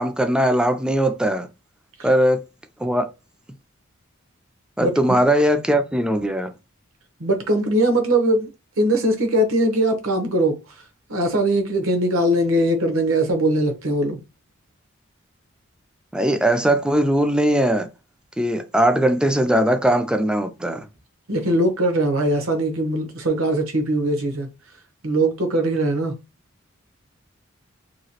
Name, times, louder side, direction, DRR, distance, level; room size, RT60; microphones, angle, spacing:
voice 1, 0.0-1.5 2.0-2.4 2.8-3.1 4.8-6.5 16.1-17.9 18.4-20.9, right 1 dB, 5° right, 0.3 m, -19 dB
voice 2, 4.8-5.2 7.2-8.5 8.8-10.6 11.1-14.2 21.3-24.5 25.0-26.2, right 1 dB, 85° right, 0.9 m, -21 dB
2.9 x 2.8 x 2.8 m
head